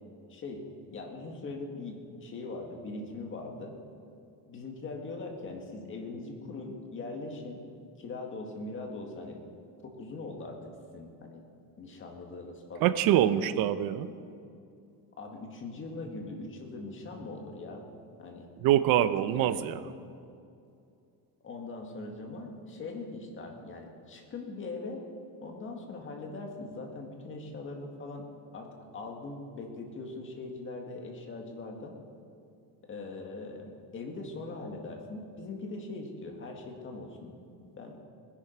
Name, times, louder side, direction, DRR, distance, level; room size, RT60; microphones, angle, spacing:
voice 1, 0.3-0.6 0.9-3.8 4.5-7.6 8.0-9.4 9.8-11.4 11.8-13.3 15.2-17.9 18.2-18.5 19.0-19.1 19.3-19.6 21.4-25.1 25.4-28.3 28.5-32.0 32.9-37.4 37.7-38.0, left 3 dB, 30° left, 2 dB, 2.0 m, -41 dB
voice 2, 12.8-14.1 18.6-19.8, right 12 dB, 65° right, 13 dB, 0.7 m, -25 dB
20.0 x 11.0 x 4.6 m, 2.5 s
cardioid pair, 160°, 38 cm